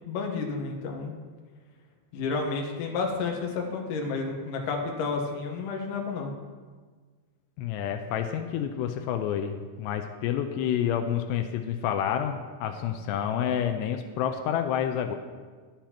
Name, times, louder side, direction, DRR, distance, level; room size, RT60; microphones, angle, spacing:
voice 1, 0.1-1.1 2.1-6.3, left 4 dB, 70° left, 1 dB, 2.1 m, -31 dB
voice 2, 7.6-15.2, left 9 dB, 85° left, 6 dB, 2.7 m, -29 dB
11.5 x 9.0 x 2.9 m, 1.5 s
omnidirectional pair, 4.9 m